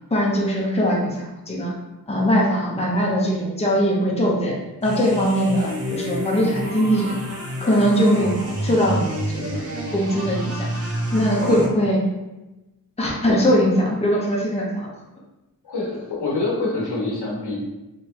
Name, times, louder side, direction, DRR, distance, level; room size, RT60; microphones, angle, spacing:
voice 1, 0.1-1.7 2.1-4.6 4.8-7.1 7.6-8.3 8.6-9.7 9.9-10.7 11.1-12.0 13.0-14.9, equal, 15° left, -3 dB, 0.8 m, -21 dB
sound 1, 4.8-11.7, equal, 40° right, 0.8 m, -29 dB
voice 2, 15.6-17.6, left 2 dB, 90° left, -5 dB, 1.4 m, -26 dB
3.3 x 3.2 x 2.9 m, 1.0 s
wide cardioid pair, 90°, 39 cm